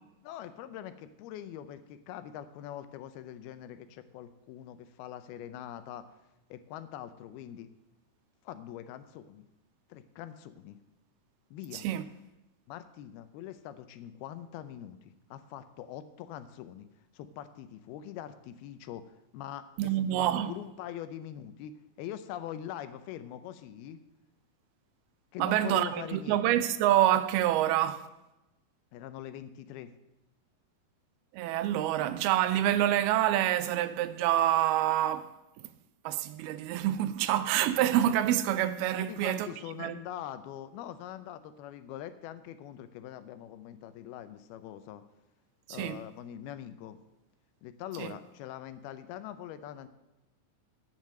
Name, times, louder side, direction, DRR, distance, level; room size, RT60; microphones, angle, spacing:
voice 1, 0.2-6.1 6.5-7.7 8.4-9.5 9.9-10.8 11.5-11.9 12.7-16.9 17.1-21.7 22.0-24.0 25.3-26.7 28.9-29.9 39.0-45.0 45.7-47.0 47.6-49.9, left 11 dB, 80° left, 2.6 m, -43 dB
voice 2, 11.7-12.0 19.8-20.5 25.4-28.1 31.3-35.3 36.1-39.5 39.8-40.0 45.8-46.0 48.0-48.1, right 12 dB, 85° right, 2.5 m, -27 dB
10.5 x 9.2 x 6.6 m
omnidirectional pair, 4.5 m